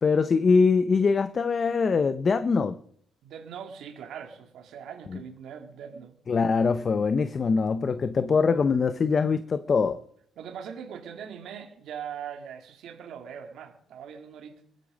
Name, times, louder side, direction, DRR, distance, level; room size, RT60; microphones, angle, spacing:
voice 1, 0.0-2.8 5.1-5.2 6.3-10.0, left 5 dB, 30° left, 0.6 m, -23 dB
voice 2, 3.2-6.1 10.4-14.6, right 8 dB, 65° right, 2.4 m, -41 dB
21.5 x 9.4 x 5.2 m
cardioid pair, 150°, 0 cm